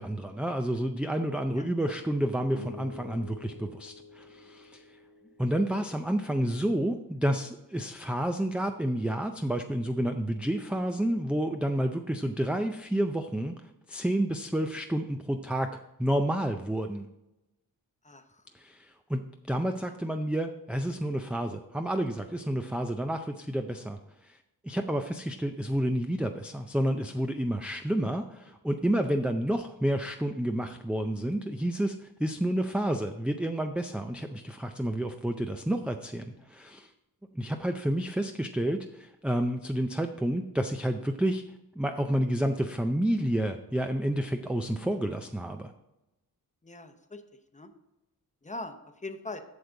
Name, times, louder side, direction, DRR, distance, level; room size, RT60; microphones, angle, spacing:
voice 1, 0.0-4.8 5.4-13.6 13.9-15.7 16.0-17.1 18.5-19.2 19.5-24.4 24.6-36.9 37.4-41.4 41.8-45.7, right 1 dB, 5° right, 5 dB, 0.4 m, -30 dB
voice 2, 1.5-1.9 5.2-5.3 12.2-12.3 18.0-18.4 19.8-19.9 27.9-28.1 36.4-36.5 46.6-47.2 47.5-47.7 48.4-49.4, left 2 dB, 20° left, 7 dB, 0.8 m, -42 dB
sound 1, 2.5-7.0, left 2 dB, 80° left, 2.0 m, -49 dB
8.0 x 6.8 x 3.8 m, 0.96 s
wide cardioid pair, 110°, 38 cm